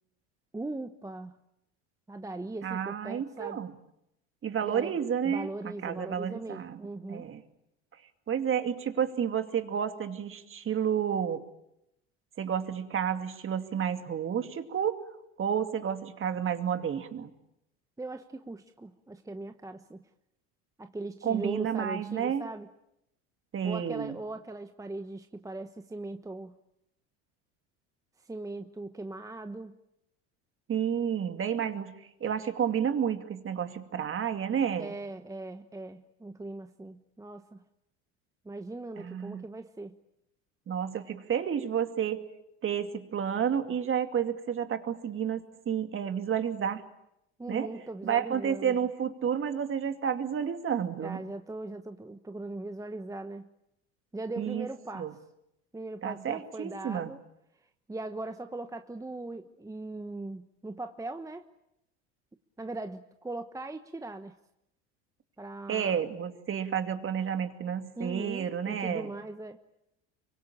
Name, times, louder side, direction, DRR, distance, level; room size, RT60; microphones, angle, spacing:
voice 1, 0.5-1.4 2.1-3.6 4.6-7.3 18.0-20.1 20.8-22.7 23.6-26.6 28.2-29.8 34.8-37.6 38.4-40.0 47.4-48.8 51.0-53.5 54.1-55.2 55.7-57.2 57.9-61.5 62.6-64.3 65.4-66.0 68.0-69.6, right 2 dB, 10° right, 8 dB, 1.1 m, -39 dB
voice 2, 2.6-3.7 4.4-6.8 7.1-7.4 7.9-8.0 8.3-11.4 12.4-15.0 15.4-17.3 21.2-22.5 23.5-24.2 30.7-34.9 39.0-39.4 40.7-42.2 42.6-46.8 47.5-47.7 48.0-51.2 54.4-54.7 54.9-55.1 56.0-57.1 65.7-69.1, right 8 dB, 35° right, 8 dB, 2.5 m, -31 dB
26.0 x 24.0 x 8.7 m, 0.84 s
supercardioid pair, 90°, 35 cm